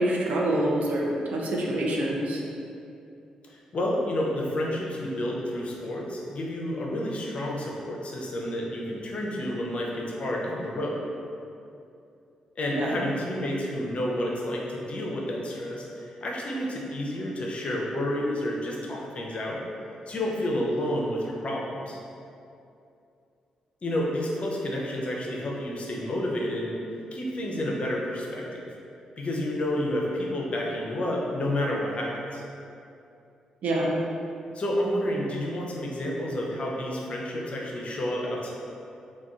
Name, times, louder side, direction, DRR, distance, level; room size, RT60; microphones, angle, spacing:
voice 1, 0.0-2.4 12.7-13.0 33.6-33.9, right 1 dB, 65° right, -2 dB, 0.5 m, -26 dB
voice 2, 3.5-11.0 12.6-19.6 20.1-22.0 23.8-26.8 27.1-28.7 29.2-32.4 34.5-38.5, left 1 dB, 50° left, -2 dB, 0.5 m, -30 dB
3.5 x 2.2 x 2.3 m, 2.6 s
hypercardioid pair, 45°, 3 cm